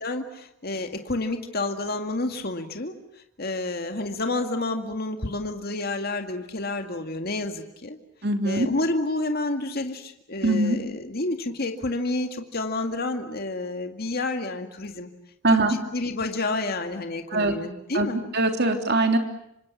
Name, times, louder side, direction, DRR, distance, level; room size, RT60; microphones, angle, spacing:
voice 1, 0.0-3.0 3.4-8.0 8.4-15.1 15.5-18.2, left 2 dB, 50° left, 5 dB, 2.1 m, -29 dB
voice 2, 8.2-8.7 10.4-10.8 15.4-15.8 17.3-17.5 17.9-18.1 18.3-19.2, right 2 dB, 50° right, 5 dB, 3.3 m, -21 dB
27.0 x 25.5 x 7.3 m, 0.80 s
head